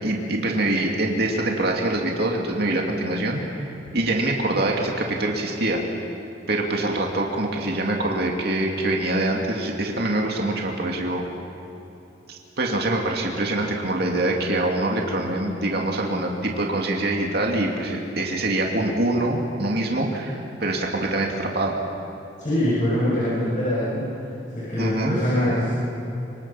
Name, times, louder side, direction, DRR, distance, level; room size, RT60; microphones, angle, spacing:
voice 1, 0.0-5.8 6.5-11.2 12.3-21.7 24.8-25.2, right 2 dB, 60° right, 0 dB, 2.5 m, -24 dB
voice 2, 22.4-24.3 24.6-25.8, left 1 dB, 40° left, -8 dB, 7.0 m, -23 dB
26.0 x 25.0 x 5.8 m, 3.0 s
head